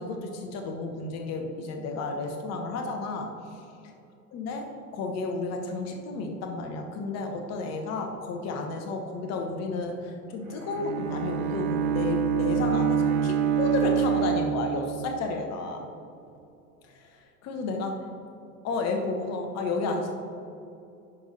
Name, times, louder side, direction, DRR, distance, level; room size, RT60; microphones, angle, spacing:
voice 1, 0.0-3.3 4.3-15.9 16.8-17.1 17.4-18.1 18.6-20.1, left 3 dB, 35° left, 3 dB, 1.0 m, -32 dB
Bowed string instrument, 10.5-15.2, right 8 dB, 60° right, 0.8 m, -26 dB
10.0 x 5.4 x 2.8 m, 2.7 s
figure-of-eight pair, 85°, 48 cm